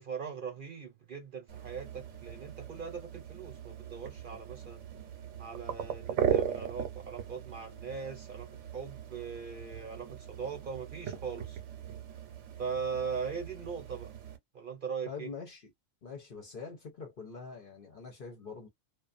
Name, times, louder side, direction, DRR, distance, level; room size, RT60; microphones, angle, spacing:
voice 1, 0.0-4.8 5.4-11.6 12.6-14.1 14.5-15.3, right 6 dB, 50° right, 0.8 m, -40 dB
sound 1, 1.5-14.4, right 9 dB, 70° right, 1.0 m, -38 dB
voice 2, 15.1-15.7 16.0-18.7, left 5 dB, 50° left, 0.8 m, -44 dB
2.4 x 2.3 x 2.4 m
omnidirectional pair, 1.3 m